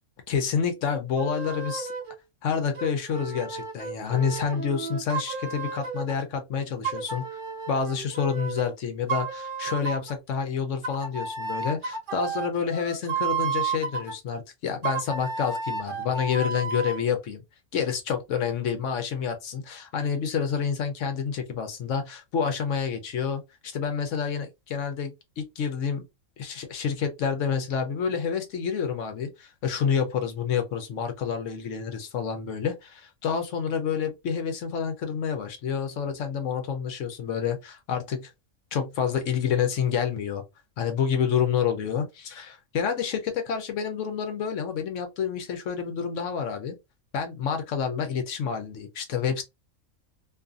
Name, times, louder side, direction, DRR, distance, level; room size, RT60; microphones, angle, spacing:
voice 1, 0.3-1.9 2.4-7.3 7.7-17.4 17.7-23.4 23.7-26.0 26.4-38.3 38.7-40.4 40.8-46.7 47.1-49.4, left 7 dB, 65° left, 0.9 m, -28 dB
sound 1, 1.2-2.2 2.7-6.2 6.8-8.7 9.1-10.2 10.8-14.1 14.8-17.0, right 5 dB, 50° right, 0.6 m, -32 dB
2.5 x 2.5 x 2.4 m
omnidirectional pair, 1.5 m